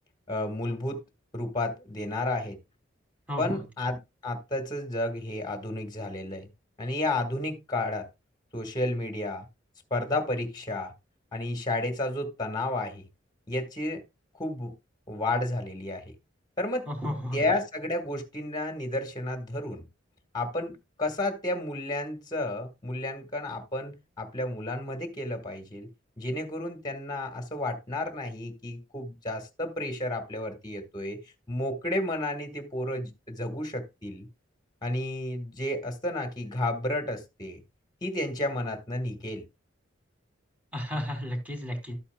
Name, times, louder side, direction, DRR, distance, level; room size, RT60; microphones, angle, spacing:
voice 1, 0.3-1.0 1.3-2.6 3.4-4.0 4.2-6.5 6.8-8.1 8.5-9.5 9.9-10.9 11.3-13.1 13.5-14.0 14.3-14.7 15.1-16.0 16.6-16.9 17.3-19.8 20.3-25.9 26.2-34.3 34.8-37.6 38.0-39.4, left 1 dB, 20° left, 1.5 m, -32 dB
voice 2, 3.3-3.6 16.9-17.4 40.7-42.0, equal, 10° right, 2.7 m, -33 dB
12.5 x 8.5 x 2.2 m
head